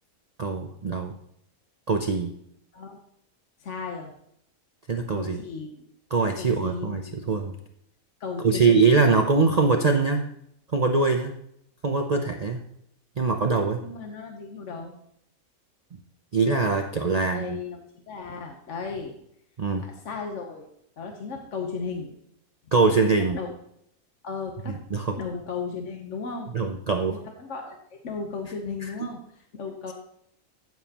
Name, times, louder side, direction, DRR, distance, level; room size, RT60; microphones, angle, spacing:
voice 1, 0.4-1.1 1.9-2.3 4.9-5.4 6.1-7.5 8.4-10.2 10.7-11.3 11.8-12.6 13.2-13.8 16.3-17.6 19.6-19.8 22.7-23.4 24.7-25.2 26.5-27.2 28.8-29.1, right 4 dB, 45° right, 4 dB, 0.5 m, -23 dB
voice 2, 3.6-4.1 5.1-5.8 6.4-7.3 8.2-8.8 13.8-14.9 17.1-19.1 19.8-20.7 21.0-22.1 23.3-23.5 24.2-24.8 25.2-26.6 27.0-29.9, left 5 dB, 60° left, 3 dB, 1.3 m, -35 dB
15.5 x 7.2 x 2.9 m, 0.73 s
omnidirectional pair, 1.5 m